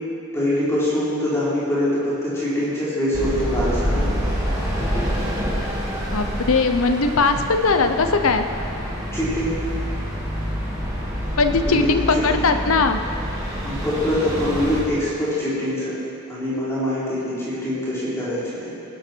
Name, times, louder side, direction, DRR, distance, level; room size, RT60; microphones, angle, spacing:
voice 1, 0.3-4.1 9.1-9.5 11.7-12.2 13.6-15.9 16.3-18.4 18.7-18.8, left 1 dB, 10° left, -11 dB, 4.1 m, -24 dB
sound 1, 3.1-14.8, equal, 15° right, 2.3 m, -27 dB
voice 2, 6.1-8.5 11.4-13.0, left 4 dB, 75° left, 7 dB, 0.8 m, -19 dB
19.5 x 12.0 x 4.6 m, 2.9 s
head